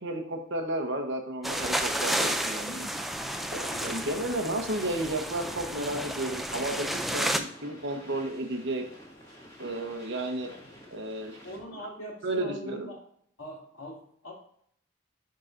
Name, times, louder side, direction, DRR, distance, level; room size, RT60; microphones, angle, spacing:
voice 1, 0.0-2.9 3.5-8.8 9.6-10.5 10.9-11.4 11.7-11.9 12.2-12.9, right 1 dB, 65° right, 4 dB, 1.1 m, -33 dB
sound 1, 1.4-7.4, right 1 dB, ahead, 0.4 m, -31 dB
sound 2, 2.9-11.8, equal, 15° left, 1.9 m, -48 dB
voice 2, 3.6-4.0 10.5-10.8 11.4-13.1 13.4-14.3, equal, 85° left, -3 dB, 2.8 m, -42 dB
10.5 x 3.8 x 2.6 m, 0.65 s
head